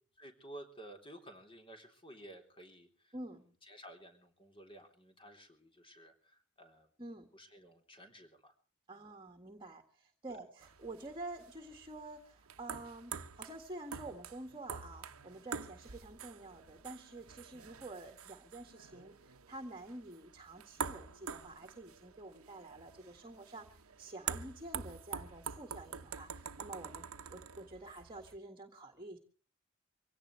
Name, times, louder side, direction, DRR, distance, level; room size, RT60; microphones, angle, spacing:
voice 1, 0.2-6.9 7.3-8.5 9.0-9.1 10.3-10.4, right 1 dB, 25° left, 4 dB, 3.7 m, -54 dB
voice 2, 3.1-3.5 7.0-7.3 8.9-29.2, right 2 dB, 25° right, 6 dB, 1.9 m, -49 dB
sound 1, 10.6-28.4, right 6 dB, 90° right, 1.0 m, -47 dB
24.5 x 17.5 x 3.3 m, 0.39 s
head